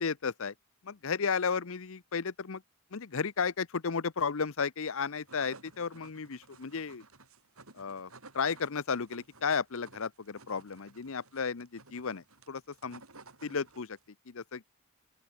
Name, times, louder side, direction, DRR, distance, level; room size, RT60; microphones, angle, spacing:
voice 1, 0.0-0.5 0.8-2.6 2.9-7.0 7.8-8.1 8.3-13.0 13.4-14.0 14.3-14.7, left 5 dB, 65° left, 0.8 m, -33 dB
sound 1, 5.0-14.1, right 3 dB, 70° right, 6.9 m, -56 dB
open air
head